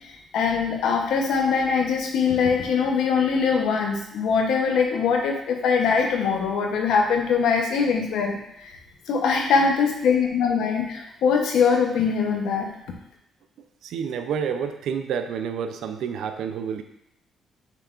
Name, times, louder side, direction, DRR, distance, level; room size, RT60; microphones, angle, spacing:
voice 1, 0.3-8.4 9.1-12.7, left 5 dB, 80° left, 1 dB, 0.8 m, -22 dB
voice 2, 13.8-16.8, right 7 dB, 80° right, 7 dB, 0.4 m, -29 dB
5.7 x 3.5 x 2.4 m, 0.80 s
cardioid pair, 90°, 0 cm